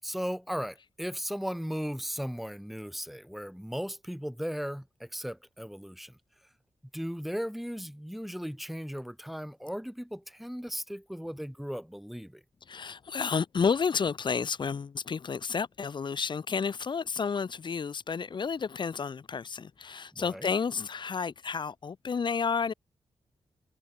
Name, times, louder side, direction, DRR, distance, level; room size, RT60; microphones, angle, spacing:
voice 1, 0.0-6.2 6.9-12.4 20.1-20.5, equal, ahead, 1.5 m, -36 dB
voice 2, 12.7-22.7, left 6 dB, 45° left, 0.7 m, -31 dB
cardioid pair, 80°, 11 cm